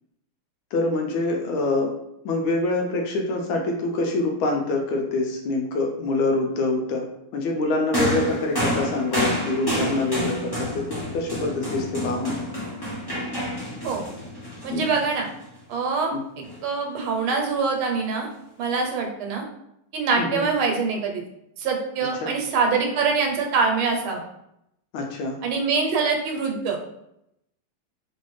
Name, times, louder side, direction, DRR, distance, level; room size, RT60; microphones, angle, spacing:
voice 1, 0.7-1.9 2.2-7.0 7.3-10.9 11.1-12.4 14.7-15.0 16.1-16.2 20.2-20.5 22.2-22.3 24.9-25.4, left 2 dB, 75° left, 2 dB, 1.4 m, -25 dB
sound 1, 7.9-15.4 16.4-16.6, left 1 dB, 40° left, 0.3 m, -29 dB
voice 2, 14.6-15.3 15.7-18.3 18.6-19.4 19.9-21.2 21.6-24.2 25.4-26.8, right 4 dB, 80° right, 2 dB, 1.5 m, -24 dB
3.2 x 3.1 x 3.1 m, 0.80 s
omnidirectional pair, 2.4 m